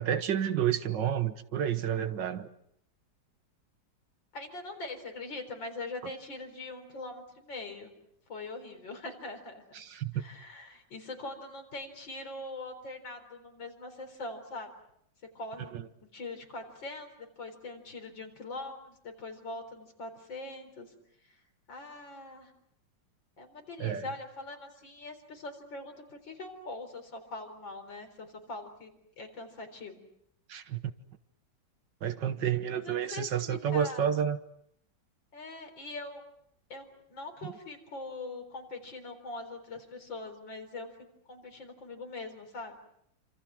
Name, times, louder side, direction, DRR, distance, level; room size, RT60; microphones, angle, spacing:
voice 1, 0.0-2.5 9.8-10.2 15.7-15.9 23.8-24.1 30.5-30.8 32.0-34.4 37.4-37.5, right 9 dB, 70° right, 1.9 m, -30 dB
voice 2, 4.3-7.9 8.3-9.6 10.1-14.7 15.3-15.7 16.1-20.9 21.3-21.4 21.7-22.5 23.4-30.1 32.7-34.1 35.3-36.2 36.7-40.9 41.3-42.8, left 2 dB, 80° left, 4.9 m, -42 dB
28.5 x 26.5 x 6.2 m
omnidirectional pair, 2.0 m